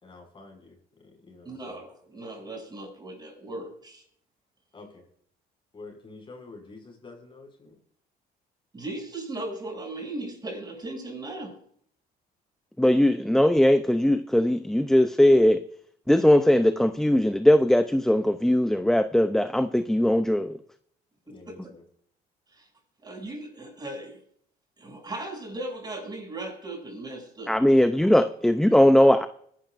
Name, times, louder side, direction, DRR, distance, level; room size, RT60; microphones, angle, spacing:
voice 1, 0.0-0.8 1.0-1.8 4.7-5.0 5.7-7.8 21.3-21.8, left 3 dB, 30° left, 2 dB, 5.9 m, -47 dB
voice 2, 1.5-4.0 8.7-11.6 21.3-21.5 22.5-22.7 23.0-24.2 24.8-27.6, right 2 dB, 25° right, 1 dB, 6.9 m, -37 dB
voice 3, 12.8-15.6 16.1-20.6 27.5-29.3, left 1 dB, 5° left, 9 dB, 0.6 m, -20 dB
23.0 x 12.0 x 2.6 m, 0.65 s
cardioid pair, 110°, 17 cm